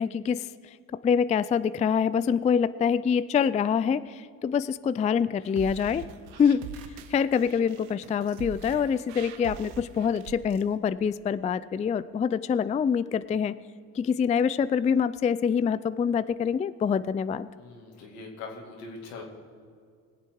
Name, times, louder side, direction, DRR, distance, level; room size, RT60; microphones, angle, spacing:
voice 1, 0.0-6.0 6.4-6.6 7.1-13.5 13.9-17.5, left 7 dB, 20° left, 16 dB, 0.3 m, -25 dB
sound 1, 5.4-10.6, right 7 dB, 85° right, 0.8 m, -43 dB
voice 2, 17.5-19.2, left 3 dB, 80° left, 1 dB, 2.5 m, -42 dB
20.5 x 7.5 x 4.7 m, 2.2 s
hypercardioid pair, 60°, 44 cm